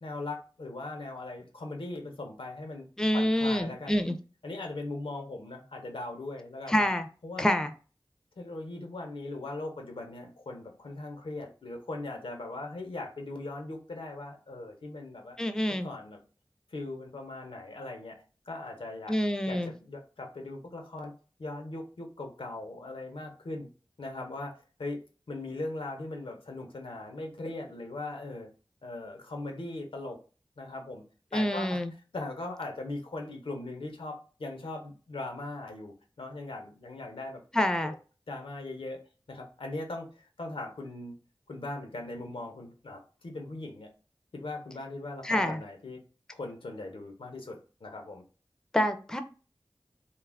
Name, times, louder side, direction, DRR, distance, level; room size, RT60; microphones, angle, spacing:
voice 1, 0.0-2.9 3.1-4.0 4.4-6.9 7.2-7.5 8.4-15.4 15.8-16.2 16.7-19.2 19.5-21.1 21.4-23.7 24.0-25.0 25.3-28.5 28.8-30.2 30.6-31.0 31.3-31.8 32.1-37.4 37.8-38.0 38.3-39.0 39.3-41.1 41.5-43.9 44.3-46.0 46.3-48.2, left 2 dB, 90° left, 3 dB, 0.6 m, -39 dB
voice 2, 3.0-4.1 6.7-7.1 7.4-7.7 15.4-15.9 19.1-19.7 31.3-31.9 37.5-37.9 45.2-45.6 48.7-49.2, equal, 5° left, 8 dB, 0.4 m, -27 dB
2.3 x 2.0 x 3.3 m, 0.36 s
wide cardioid pair, 50°, 9 cm